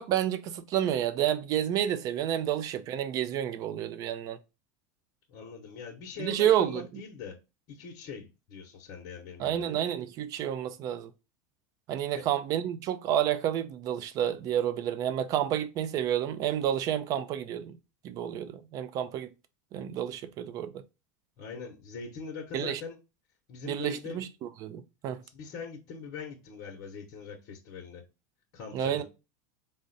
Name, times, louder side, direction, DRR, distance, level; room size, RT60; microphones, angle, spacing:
voice 1, 0.0-4.4 6.2-7.0 9.4-11.1 11.9-17.8 18.0-19.3 19.7-20.8 22.5-22.8 23.6-25.2 28.7-29.0, right 10 dB, 40° right, 0.5 m, -30 dB
voice 2, 5.3-7.4 7.7-9.6 12.2-12.3 21.4-23.0 23.5-24.2 25.2-28.0 28.5-29.0, left 6 dB, 50° left, 0.8 m, -42 dB
3.7 x 2.1 x 3.9 m
supercardioid pair, 135°, 9 cm